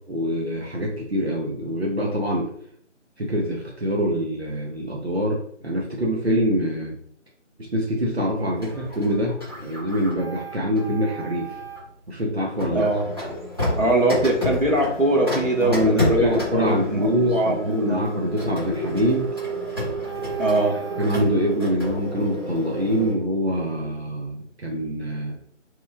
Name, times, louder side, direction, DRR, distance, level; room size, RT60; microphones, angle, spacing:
voice 1, 0.1-2.4 3.2-6.9 7.7-11.6 12.1-12.9 15.6-19.3 21.0-25.4, equal, 55° right, -2 dB, 0.7 m, -24 dB
Printer, 8.6-11.9 12.6-23.1, equal, 20° right, 1.0 m, -30 dB
voice 2, 12.7-13.1 13.8-18.0 20.4-20.8, right 1 dB, 85° right, -1 dB, 1.1 m, -22 dB
2.9 x 2.2 x 3.6 m, 0.66 s
figure-of-eight pair, 165°, 37 cm